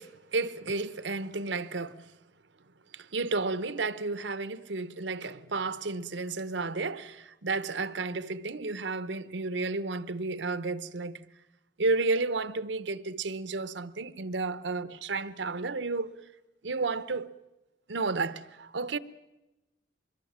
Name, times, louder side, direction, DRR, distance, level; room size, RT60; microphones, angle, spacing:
voice 1, 0.0-2.1 2.9-11.3 11.8-16.2 16.6-17.3 17.9-19.0, right 3 dB, 80° right, 1.0 m, -32 dB
25.0 x 22.0 x 7.4 m
head